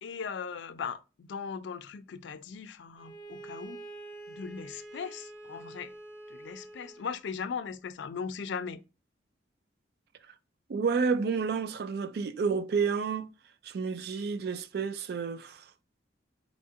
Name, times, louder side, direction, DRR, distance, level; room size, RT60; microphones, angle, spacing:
voice 1, 0.0-3.8 4.3-5.9 6.3-8.8, left 6 dB, 80° left, 0.4 m, -38 dB
Bowed string instrument, 3.0-7.2, right 2 dB, 90° right, 1.0 m, -46 dB
voice 2, 10.7-13.3 13.6-15.7, right 5 dB, 55° right, 0.3 m, -30 dB
4.1 x 2.4 x 2.6 m
head